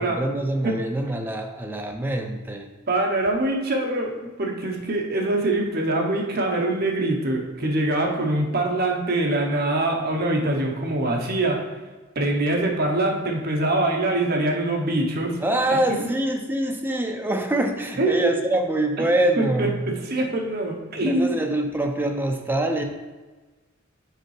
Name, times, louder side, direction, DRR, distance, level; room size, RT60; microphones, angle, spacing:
voice 1, 0.0-2.7 15.4-19.8 21.1-22.8, right 1 dB, 10° right, 3 dB, 0.5 m, -24 dB
voice 2, 2.9-11.6 12.2-15.4 18.0-18.4 19.4-21.4, right 2 dB, 50° right, 1 dB, 0.9 m, -24 dB
6.5 x 4.6 x 3.2 m, 1.3 s
head